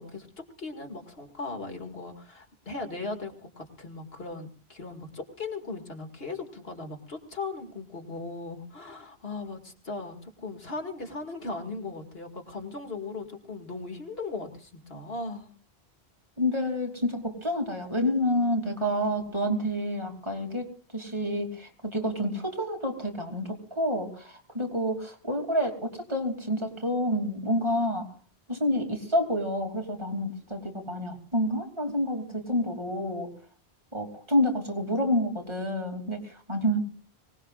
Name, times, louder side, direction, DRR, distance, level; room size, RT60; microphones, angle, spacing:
voice 1, 0.0-15.5, left 3 dB, 70° left, 4 dB, 2.6 m, -38 dB
voice 2, 16.4-28.1 28.5-33.3 33.9-36.8, left 1 dB, 25° right, 2 dB, 3.0 m, -28 dB
24.0 x 19.0 x 2.5 m, 0.40 s
omnidirectional pair, 1.1 m